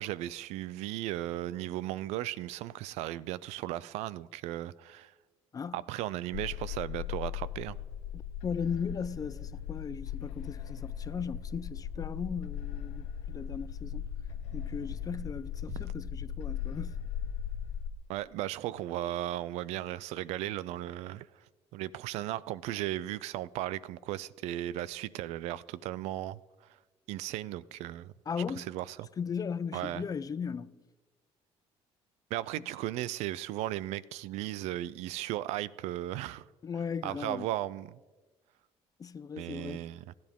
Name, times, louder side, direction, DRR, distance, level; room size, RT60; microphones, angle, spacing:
voice 1, 0.0-5.1 5.7-7.8 15.7-15.9 18.1-21.3 21.7-26.4 27.1-28.1 28.6-29.1 29.7-30.0 32.3-36.4 37.0-38.0 39.4-40.1, right 14 dB, 85° right, 0.4 m, -36 dB
voice 2, 5.5-5.8 8.1-14.1 14.5-17.0 28.3-28.7 29.2-30.8 32.6-32.7 36.6-37.5 39.0-39.9, left 6 dB, 35° left, 0.5 m, -37 dB
sound 1, 6.3-17.9, left 9 dB, 90° left, 0.7 m, -38 dB
28.0 x 10.5 x 3.6 m
cardioid pair, 100°, 11 cm